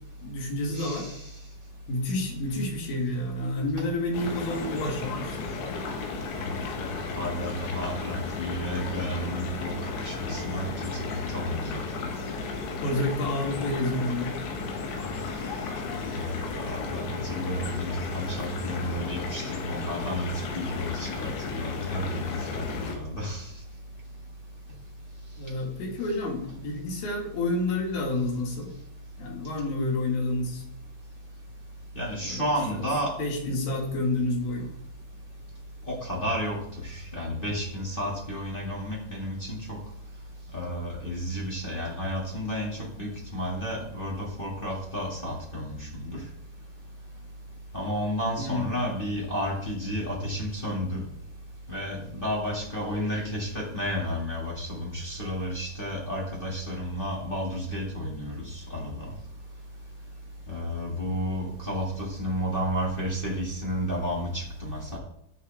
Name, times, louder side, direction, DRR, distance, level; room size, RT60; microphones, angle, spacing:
voice 1, 0.2-1.1 1.9-5.6 12.8-14.3 25.4-28.7 29.2-30.6 32.2-32.4 32.7-32.9 33.2-34.7 48.4-48.8, left 2 dB, 60° left, 1 dB, 3.5 m, -29 dB
voice 2, 0.7-1.2 6.8-9.7 10.0-12.0 16.2-23.5 31.9-33.1 35.9-36.6 36.8-39.8 40.5-46.2 47.7-51.0 51.7-59.0 60.5-65.0, equal, 40° left, -5 dB, 0.7 m, -32 dB
sound 1, 4.1-23.0, left 4 dB, 85° left, 3.8 m, -34 dB
17.0 x 6.3 x 3.5 m, 0.74 s
omnidirectional pair, 5.1 m